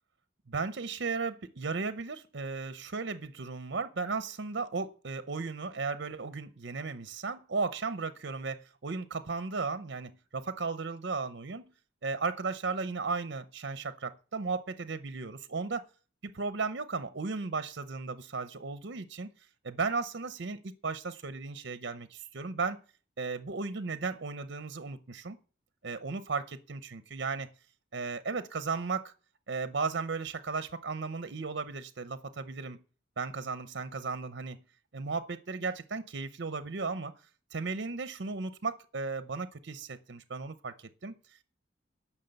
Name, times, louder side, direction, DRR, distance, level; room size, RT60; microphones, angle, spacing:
voice 1, 0.5-11.7 12.0-15.8 16.2-19.3 19.6-22.8 23.2-25.4 25.8-27.5 27.9-29.1 29.5-32.8 33.2-34.6 34.9-37.1 37.5-41.2, right 4 dB, 65° right, 12 dB, 0.7 m, -35 dB
11.0 x 6.0 x 7.9 m, 0.39 s
head